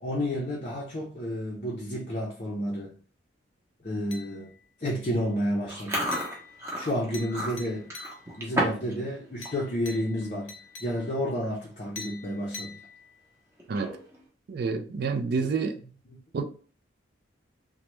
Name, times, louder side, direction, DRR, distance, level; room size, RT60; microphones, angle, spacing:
voice 1, 0.0-3.0 3.8-4.5 4.8-6.1 6.7-7.9 8.4-10.5 10.8-12.7, equal, 35° left, 0.5 m, -31 dB
sound 1, 4.1-4.7 5.0-5.5 6.1-8.5 9.4-11.3 12.0-13.4, left 4 dB, 80° left, 0.6 m, -46 dB
Chewing mastication, 5.7-8.9 9.2-9.6 10.0-10.2 11.0-11.1 11.3-11.6 12.1-12.2 13.6-14.2, equal, 15° right, 0.7 m, -32 dB
voice 2, 14.5-15.8 16.3-16.4, right 4 dB, 50° right, 0.3 m, -28 dB
3.1 x 2.1 x 3.0 m
head